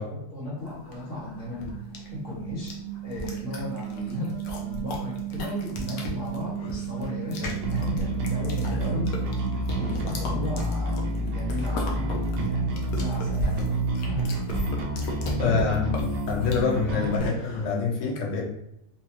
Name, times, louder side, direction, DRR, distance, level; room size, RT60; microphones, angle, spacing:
voice 1, 0.1-1.7 2.1-2.8 3.0-9.4 9.7-13.8 14.1-14.5 15.2-15.6 16.9-17.0, left 1 dB, 5° right, -8 dB, 1.0 m, -35 dB
sound 1, 0.6-17.7, left 1 dB, 70° left, 1.1 m, -36 dB
sound 2, 0.8-10.9, right 14 dB, 50° left, 1.7 m, -37 dB
Bass guitar, 7.6-17.2, right 1 dB, 70° right, 1.2 m, -28 dB
voice 2, 15.4-16.0 16.3-18.4, left 5 dB, 90° left, -1 dB, 1.6 m, -26 dB
4.1 x 2.3 x 2.8 m, 0.78 s
omnidirectional pair, 2.3 m